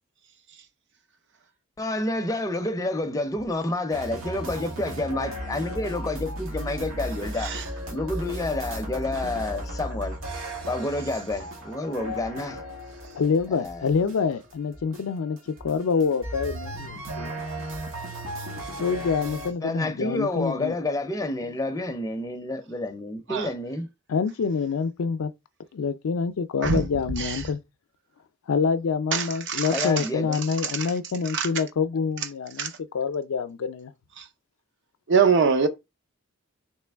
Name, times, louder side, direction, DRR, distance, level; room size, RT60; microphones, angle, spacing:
voice 1, 1.8-7.5 7.9-10.2 10.7-12.6 13.5-13.8 19.6-23.9 29.7-30.4, left 2 dB, 15° left, 0.5 m, -29 dB
sound 1, 3.9-19.5, equal, 75° right, 1.1 m, -35 dB
voice 2, 13.1-17.3 18.8-20.7 24.1-25.3 25.7-27.6 28.5-33.9, left 5 dB, 90° left, 0.4 m, -26 dB
voice 3, 29.1-30.1 30.6-30.9 31.3-31.5 32.6-32.7 34.2-34.3 35.1-35.7, right 5 dB, 60° right, 0.6 m, -23 dB
3.2 x 3.0 x 3.3 m
head